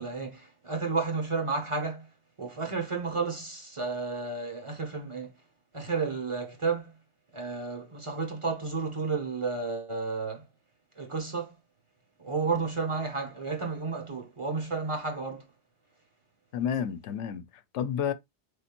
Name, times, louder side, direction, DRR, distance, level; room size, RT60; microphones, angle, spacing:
voice 1, 0.0-2.1 2.4-5.4 5.7-6.9 7.3-10.4 11.0-11.5 12.2-15.5, right 4 dB, 30° right, 0.8 m, -32 dB
voice 2, 16.5-18.1, left 8 dB, 85° left, 0.9 m, -31 dB
4.1 x 3.4 x 2.9 m
omnidirectional pair, 1.1 m